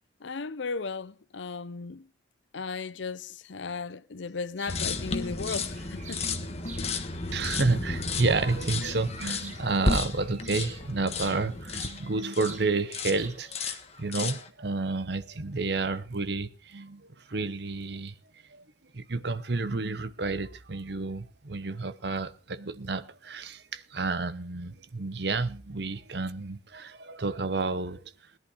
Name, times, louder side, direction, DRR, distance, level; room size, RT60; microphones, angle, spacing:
voice 1, 0.2-2.1 2.5-6.2, left 4 dB, 75° left, 0.7 m, -36 dB
sound 1, 4.6-4.8 5.2-6.9 7.4-11.4 11.8-12.7 12.9-13.6, right 6 dB, 40° right, 1.5 m, -47 dB
sound 2, 4.7-12.6 12.9-13.2 13.5-14.5, left 3 dB, 35° left, 1.4 m, -33 dB
voice 2, 7.3-18.1 18.5-18.6 18.9-28.0, right 3 dB, 60° right, 0.9 m, -30 dB
18.0 x 11.0 x 5.0 m
head